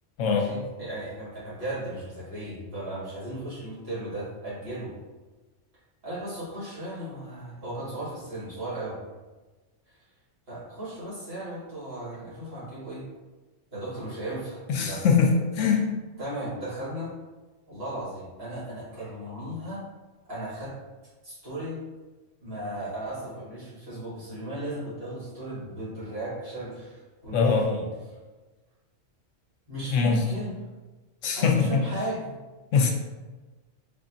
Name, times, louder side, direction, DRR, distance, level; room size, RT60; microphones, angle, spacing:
voice 1, 0.2-4.9 6.0-9.0 10.5-13.0 13.7-15.0 16.2-17.1 17.7-19.8 20.3-20.7 21.2-21.8 22.4-27.9 29.7-30.6 31.4-32.4, right 1 dB, 50° right, -9 dB, 1.8 m, -36 dB
voice 2, 14.7-15.3 15.6-15.9 27.3-27.7 29.9-30.2 31.2-31.8 32.7-32.9, left 5 dB, 85° left, 2 dB, 1.0 m, -22 dB
4.8 x 2.4 x 2.5 m, 1.2 s
omnidirectional pair, 1.3 m